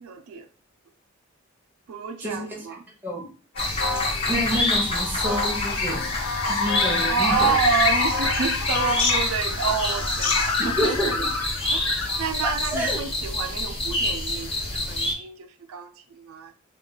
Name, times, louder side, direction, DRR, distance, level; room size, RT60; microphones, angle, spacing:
voice 1, 0.0-0.5 1.9-2.8 7.1-11.2 11.7-16.5, right 6 dB, 75° right, 0.4 m, -29 dB
voice 2, 2.2-2.6 3.0-3.3 4.3-6.2 6.4-7.6 10.6-11.3 12.7-13.0, equal, 10° right, 0.7 m, -28 dB
sound 1, 3.6-12.2, left 4 dB, 85° left, 0.6 m, -27 dB
sound 2, 3.6-15.1, left 2 dB, 25° left, 0.6 m, -28 dB
2.3 x 2.2 x 3.8 m
head